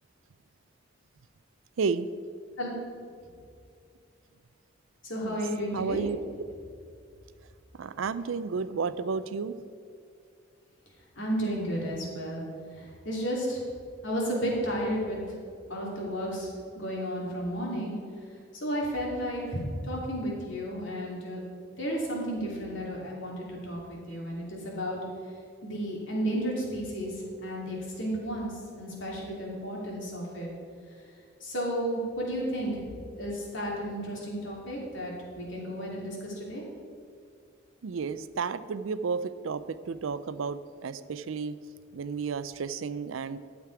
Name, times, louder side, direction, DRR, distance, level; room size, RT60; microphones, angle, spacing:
voice 1, 5.0-6.0 11.2-12.4 12.7-13.6 14.0-15.2 15.7-17.9 18.6-21.4 21.8-25.0 25.6-27.1 27.4-28.5 28.8-30.5 31.4-32.8 33.2-36.6, equal, 70° left, -3 dB, 2.8 m, -32 dB
voice 2, 5.7-6.2 7.8-9.6 37.8-41.6 41.9-43.4, right 5 dB, 85° right, 14 dB, 0.5 m, -32 dB
12.0 x 7.4 x 4.7 m, 2.3 s
head